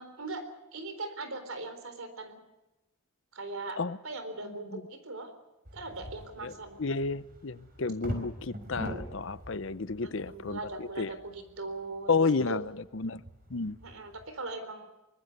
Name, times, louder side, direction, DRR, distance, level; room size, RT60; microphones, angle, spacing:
voice 1, 0.0-2.4 3.3-5.3 5.7-6.8 10.0-12.2 12.5-12.6 13.8-14.9, right 3 dB, 80° right, 4.0 m, -40 dB
sound 1, 5.6-14.3, equal, 40° right, 4.5 m, -44 dB
voice 2, 6.8-11.1 12.1-13.2 13.5-13.8, left 4 dB, 60° left, 0.7 m, -31 dB
24.5 x 20.0 x 6.7 m
head